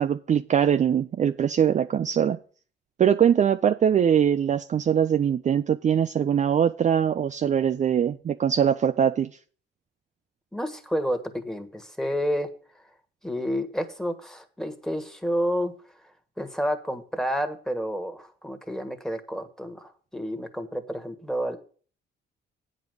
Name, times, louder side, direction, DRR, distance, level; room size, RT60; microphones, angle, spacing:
voice 1, 0.0-2.4 3.0-9.3, right 8 dB, 40° right, 10 dB, 0.4 m, -22 dB
voice 2, 10.5-12.5 13.2-15.7 16.4-21.6, equal, ahead, 8 dB, 1.4 m, -30 dB
8.5 x 5.2 x 7.8 m, 0.41 s
cardioid pair, 90°, 20 cm